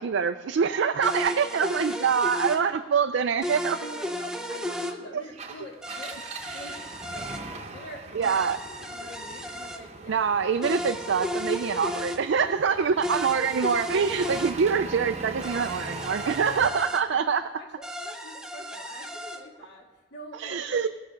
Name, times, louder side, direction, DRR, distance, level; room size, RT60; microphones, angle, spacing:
voice 1, 0.0-3.8 5.1-5.2 8.1-8.6 10.1-17.4 20.4-20.9, right 6 dB, 60° right, 8 dB, 0.4 m, -25 dB
sound 1, 1.0-2.6 3.4-5.0 5.8-7.4 8.2-9.8 10.6-12.2 13.0-14.5 15.4-17.0 17.8-19.4, equal, 5° right, 0.6 m, -34 dB
voice 2, 3.8-7.3 7.7-8.4 8.8-10.2 12.3-13.1 14.0-14.2 16.6-19.9 20.1-20.9, equal, 55° left, -1 dB, 2.2 m, -45 dB
Engine, 5.3-16.7, right 3 dB, 30° right, 0.9 m, -41 dB
17.5 x 6.6 x 5.1 m, 1.2 s
head